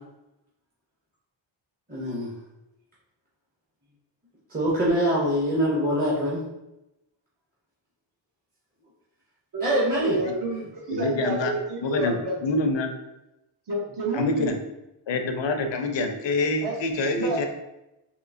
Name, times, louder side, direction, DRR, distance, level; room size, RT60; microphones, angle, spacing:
voice 1, 1.9-2.3 4.5-6.4 9.6-10.2, equal, 20° right, -7 dB, 0.7 m, -24 dB
voice 2, 10.0-12.4 13.7-14.6 16.6-16.8 17.1-17.5, right 2 dB, 55° right, -2 dB, 1.0 m, -29 dB
voice 3, 10.9-11.5 11.8-12.9 14.1-14.6 15.1-17.5, left 2 dB, 65° left, 5 dB, 0.6 m, -26 dB
3.6 x 2.7 x 2.6 m, 0.91 s
wide cardioid pair, 145°, 48 cm